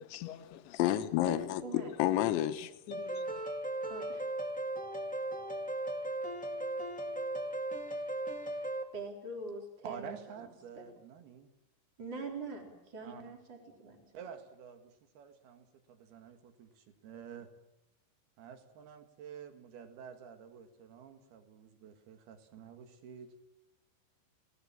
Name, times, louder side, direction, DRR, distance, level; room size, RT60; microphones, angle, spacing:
voice 1, 0.1-3.4, left 13 dB, 80° left, 10 dB, 3.4 m, -32 dB
voice 2, 1.3-1.9 3.9-4.3 8.9-10.2 10.8-10.9 12.0-14.1, right 3 dB, 25° right, 2 dB, 4.3 m, -43 dB
sound 1, 2.9-8.8, right 1 dB, 5° left, 1.0 m, -37 dB
voice 3, 9.8-11.5 13.0-13.3 14.1-17.5 18.4-23.3, right 7 dB, 60° right, 7 dB, 3.7 m, -49 dB
29.5 x 18.5 x 7.4 m, 0.93 s
omnidirectional pair, 5.3 m